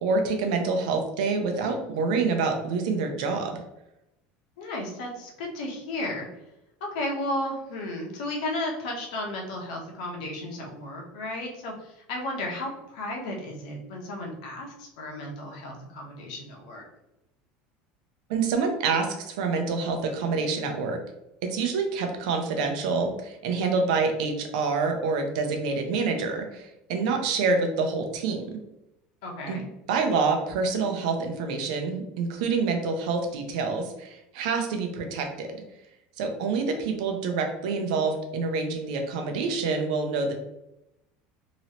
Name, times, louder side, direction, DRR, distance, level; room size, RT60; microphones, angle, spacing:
voice 1, 0.0-3.6 18.3-21.0 21.4-28.6 29.5-29.6 29.9-35.6 36.2-40.3, right 4 dB, 85° right, 4 dB, 0.7 m, -27 dB
voice 2, 4.6-6.3 6.8-16.8 29.2-29.6, left 1 dB, 85° left, 0 dB, 1.0 m, -34 dB
3.0 x 2.8 x 2.8 m, 0.88 s
cardioid pair, 140°, 4 cm